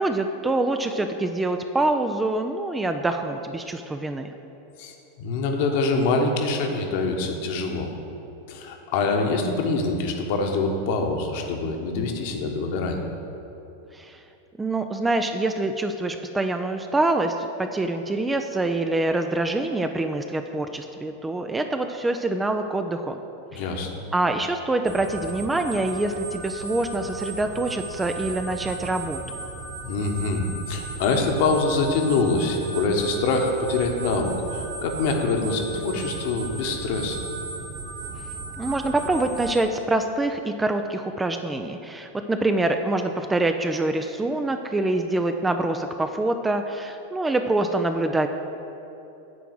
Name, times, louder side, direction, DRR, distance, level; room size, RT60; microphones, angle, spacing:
voice 1, 0.0-4.3 13.9-14.2 14.6-23.2 23.5-23.7 24.1-29.2 38.6-48.3, right 2 dB, 10° right, 6 dB, 0.4 m, -25 dB
voice 2, 4.8-7.9 8.5-13.0 23.5-24.0 29.8-37.2, left 3 dB, 50° left, 3 dB, 1.2 m, -25 dB
sound 1, 24.9-39.5, right 3 dB, 30° right, 1.4 m, -36 dB
9.7 x 4.6 x 7.8 m, 3.0 s
figure-of-eight pair, 90°, 0 cm